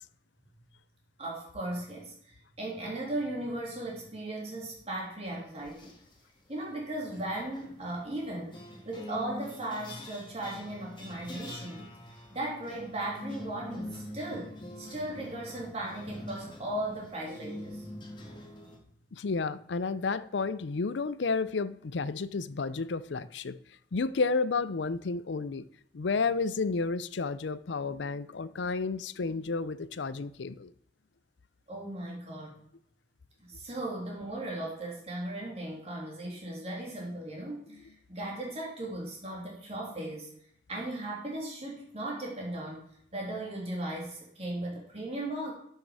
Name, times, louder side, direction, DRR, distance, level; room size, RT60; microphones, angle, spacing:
voice 1, 1.2-5.9 6.5-8.6 8.8-14.5 14.8-17.9 31.7-32.5 33.4-40.3 40.7-42.8 43.1-45.5, right 1 dB, 35° right, 2.8 m, -37 dB
sound 1, 5.6-6.2 7.1-18.8, left 1 dB, 25° left, 2.1 m, -45 dB
voice 2, 19.1-23.6 23.9-25.7 25.9-30.7 37.7-37.8, left 4 dB, 75° left, 0.5 m, -31 dB
13.0 x 6.5 x 4.8 m
head